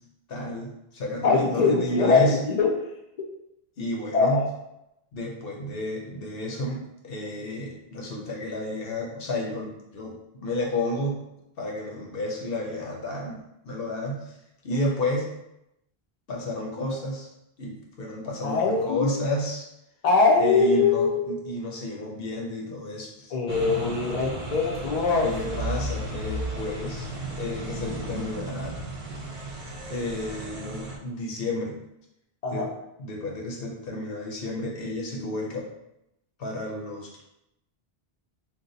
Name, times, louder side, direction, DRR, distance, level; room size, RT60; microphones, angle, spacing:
voice 1, 0.3-2.4 3.8-4.5 5.1-11.2 11.6-14.3 14.6-15.3 16.3-17.3 17.6-19.7 20.3-23.3 25.2-27.1 27.4-28.8 29.9-31.8 32.5-32.7 33.0-35.7 36.4-37.2, left 1 dB, 65° left, -1 dB, 0.9 m, -31 dB
voice 2, 1.2-2.7 4.1-4.5 18.4-19.2 20.0-21.3 23.3-25.6 32.4-32.7, left 4 dB, 50° left, -1 dB, 0.5 m, -22 dB
sound 1, 23.5-31.0, right 1 dB, 40° right, 0.5 m, -34 dB
2.6 x 2.2 x 3.9 m, 0.84 s
omnidirectional pair, 1.1 m